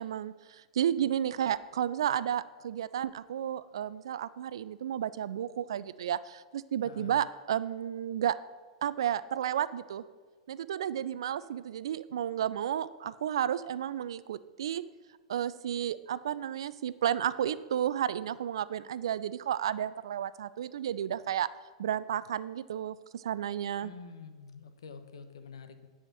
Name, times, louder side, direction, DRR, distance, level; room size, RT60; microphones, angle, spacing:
voice 1, 0.0-8.4 8.8-10.0 10.5-14.8 15.3-21.5 21.8-23.9, right 10 dB, 65° right, 16 dB, 0.4 m, -32 dB
voice 2, 6.8-7.2 23.8-25.9, left 5 dB, 70° left, 9 dB, 0.9 m, -47 dB
9.8 x 4.9 x 5.8 m, 1.4 s
figure-of-eight pair, 100°, 3 cm